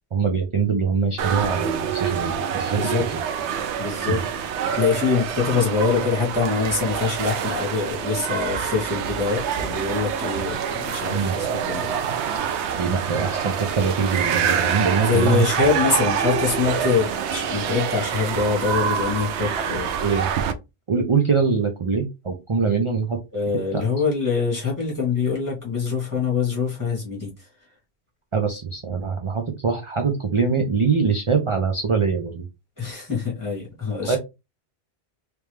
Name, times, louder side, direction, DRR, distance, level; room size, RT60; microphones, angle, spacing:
voice 1, 0.1-2.9 4.1-4.2 11.1-11.4 12.7-15.4 19.5-19.6 20.0-20.3 20.9-23.2 23.7-23.8 28.3-32.5 33.9-34.2, right 5 dB, 35° right, 0.6 m, -23 dB
sound 1, 1.2-20.5, right 7 dB, 85° right, 0.9 m, -26 dB
voice 2, 2.7-3.0 3.8-4.2 4.7-12.0 15.0-19.9 23.3-27.5 32.8-34.2, left 5 dB, 15° left, 1.7 m, -24 dB
3.4 x 3.1 x 3.3 m
omnidirectional pair, 1.1 m